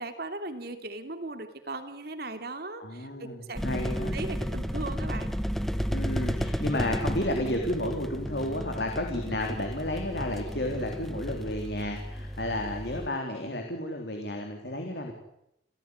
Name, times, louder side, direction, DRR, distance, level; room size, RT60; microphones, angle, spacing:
voice 1, 0.0-3.6 4.1-5.3, right 2 dB, 60° right, 8 dB, 3.0 m, -38 dB
voice 2, 2.8-4.2 5.9-15.1, left 1 dB, 65° left, 3 dB, 3.6 m, -32 dB
sound 1, 3.6-13.1, equal, ahead, 1.3 m, -33 dB
29.5 x 15.5 x 9.6 m, 0.80 s
head